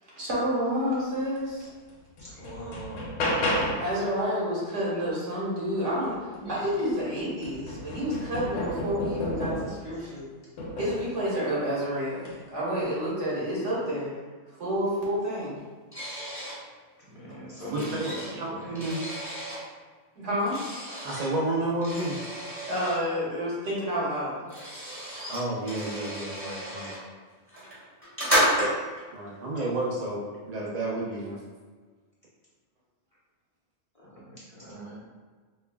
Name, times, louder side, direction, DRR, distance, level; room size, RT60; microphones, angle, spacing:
voice 1, 0.1-1.7 3.8-6.2 6.5-10.3 10.8-14.1 14.6-15.6 20.1-20.6 22.7-24.5, equal, 75° right, -7 dB, 1.5 m, -29 dB
sound 1, 1.6-1.7 2.2-4.0 6.4-6.5 6.9-9.9 10.6-11.1 12.1-12.4, left 1 dB, 70° left, 0.9 m, -31 dB
voice 2, 2.2-3.1 6.4-6.7 9.8-10.2 17.0-18.2 18.5-18.9 33.9-35.0, right 1 dB, 35° left, -9 dB, 0.8 m, -41 dB
sound 2, 15.9-16.6 17.3-19.6 20.4-21.3 21.8-23.0 24.0-24.1 24.2-27.0 27.5-29.0, equal, 10° right, 1.4 m, -31 dB
voice 3, 17.7-19.0 21.0-22.2 25.3-27.0 29.1-31.4, right 2 dB, 55° right, -4 dB, 0.4 m, -31 dB
5.2 x 2.3 x 2.2 m, 1.4 s
omnidirectional pair, 1.3 m